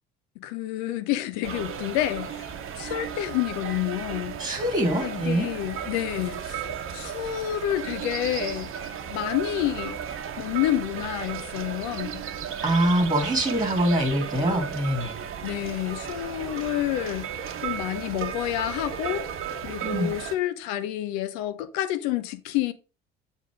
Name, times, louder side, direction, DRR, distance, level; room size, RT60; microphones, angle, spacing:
voice 1, 0.4-4.4 4.9-8.7 9.1-10.0 10.4-12.2 15.4-17.3 17.6-19.3 19.6-22.7, left 13 dB, 60° left, 0.8 m, -29 dB
sound 1, 1.4-20.4, right 8 dB, 40° right, 1.1 m, -35 dB
voice 2, 4.4-5.5 12.6-15.2 19.8-20.1, right 1 dB, 10° right, 2.3 m, -24 dB
7.4 x 4.1 x 5.0 m
figure-of-eight pair, 55°, 32 cm